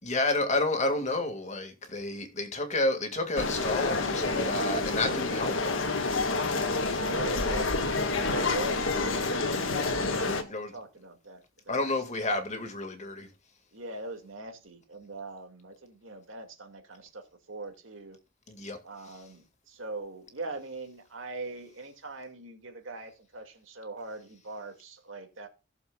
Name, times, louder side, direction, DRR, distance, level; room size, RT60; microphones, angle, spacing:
voice 1, 0.0-5.9 10.5-10.7 11.7-13.3 18.5-18.8, left 2 dB, 35° left, 2.0 m, -30 dB
sound 1, 3.3-10.4, left 3 dB, 75° left, 1.6 m, -28 dB
voice 2, 7.1-11.8 12.2-12.3 13.7-18.2 18.8-25.5, right 2 dB, 75° right, 2.2 m, -42 dB
18.0 x 7.0 x 2.4 m
head